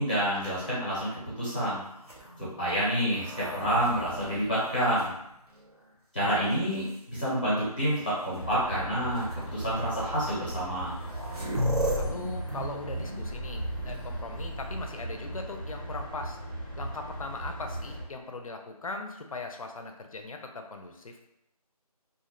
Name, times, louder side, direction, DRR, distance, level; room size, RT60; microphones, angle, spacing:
voice 1, 0.0-1.8 2.4-5.1 6.1-10.9, equal, 15° left, -9 dB, 0.6 m, -28 dB
sound 1, 2.0-5.8 6.5-7.2 8.3-8.4 9.2-9.3 10.5-10.6 10.8-15.2 17.2-17.9, equal, 70° right, 0.8 m, -36 dB
sound 2, 8.3-18.0, right 1 dB, 35° right, 0.4 m, -38 dB
voice 2, 12.0-16.4 16.8-21.2, left 3 dB, 60° left, 4 dB, 0.4 m, -39 dB
2.5 x 2.0 x 2.4 m, 0.81 s
figure-of-eight pair, 175°, 20 cm